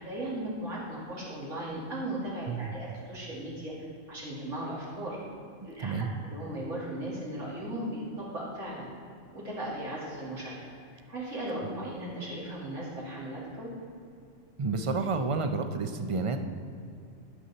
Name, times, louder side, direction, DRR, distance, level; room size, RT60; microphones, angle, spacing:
voice 1, 0.0-3.7 4.1-5.2 5.6-8.9 9.3-10.6 11.1-13.7, right 1 dB, 80° right, -6 dB, 2.8 m, -37 dB
voice 2, 5.8-6.1 14.6-16.4, right 4 dB, 45° right, 7 dB, 0.4 m, -30 dB
12.5 x 6.5 x 4.1 m, 2.5 s
omnidirectional pair, 1.2 m